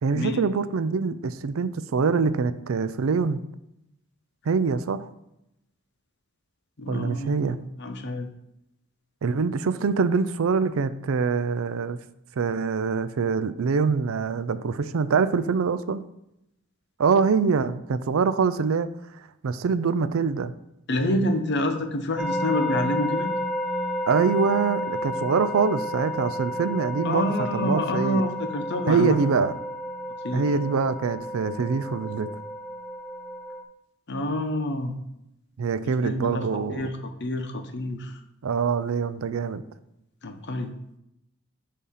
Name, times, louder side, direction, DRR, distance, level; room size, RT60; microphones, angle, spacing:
voice 1, 0.0-3.4 4.5-5.1 6.9-7.6 9.2-12.0 12.4-16.0 17.0-18.9 19.4-20.5 24.1-28.2 28.9-29.5 30.3-32.3 35.6-36.8 38.4-39.6, right 5 dB, 75° right, 13 dB, 0.4 m, -24 dB
voice 2, 6.8-8.3 20.9-23.3 27.0-29.2 30.2-30.4 34.1-34.9 36.0-38.2 40.2-40.7, left 1 dB, 55° left, 6 dB, 0.8 m, -28 dB
sound 1, 22.2-33.6, equal, 5° right, 0.5 m, -31 dB
8.3 x 2.8 x 5.7 m, 0.83 s
head